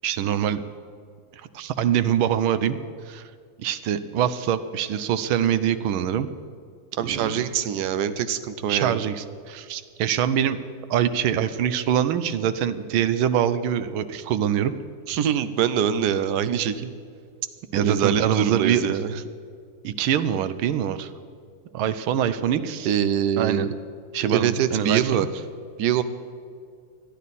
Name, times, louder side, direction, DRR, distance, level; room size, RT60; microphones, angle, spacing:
voice 1, 0.0-0.6 1.5-2.8 3.1-3.2 3.6-6.3 7.0-7.3 8.7-10.6 10.9-14.7 17.7-18.9 19.8-21.1 21.7-22.9 23.4-23.7 24.1-25.0, right 9 dB, 90° right, 12 dB, 1.5 m, -24 dB
voice 2, 6.9-9.0 15.1-16.9 17.8-19.1 22.8-23.7 24.2-25.3 25.8-26.0, right 9 dB, 65° right, 11 dB, 1.2 m, -24 dB
20.0 x 12.5 x 4.2 m, 2.2 s
omnidirectional pair, 2.2 m